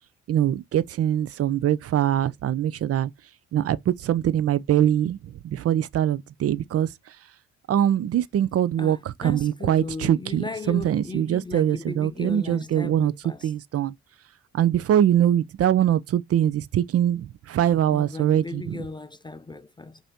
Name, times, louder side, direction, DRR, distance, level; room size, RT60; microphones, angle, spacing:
voice 1, 0.3-3.1 3.5-6.9 7.7-13.1 13.4-13.9 14.5-18.8, right 10 dB, 50° right, 0.5 m, -23 dB
voice 2, 8.8-13.5 17.9-20.0, left 3 dB, 15° left, 0.4 m, -37 dB
5.4 x 2.7 x 2.8 m
cardioid pair, 90°, 30 cm